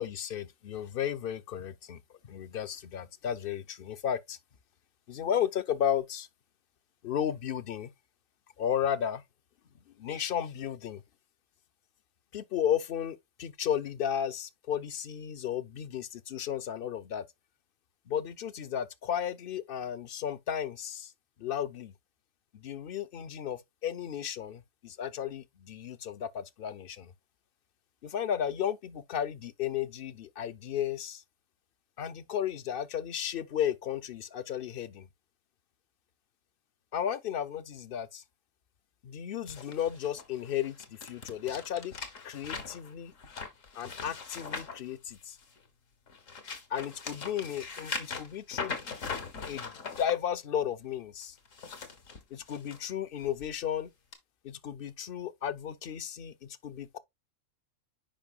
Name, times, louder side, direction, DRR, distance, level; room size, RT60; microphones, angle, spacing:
voice 1, 0.0-2.0 2.2-4.4 5.1-6.3 7.0-7.9 8.6-9.2 10.0-11.0 12.3-17.2 18.1-21.1 21.4-21.9 22.5-27.1 28.0-31.2 32.0-35.1 36.9-38.2 39.0-41.9 42.2-43.1 43.7-45.4 46.7-48.8 49.4-51.4 52.3-53.9 54.4-56.3 56.6-57.0, left 9 dB, 55° left, 0.7 m, -34 dB
sound 1, 39.5-45.6 46.1-50.1 51.4-52.8 53.2-53.5 54.1-54.2, left 5 dB, 85° left, 1.8 m, -40 dB
8.8 x 5.3 x 2.3 m
omnidirectional pair, 1.3 m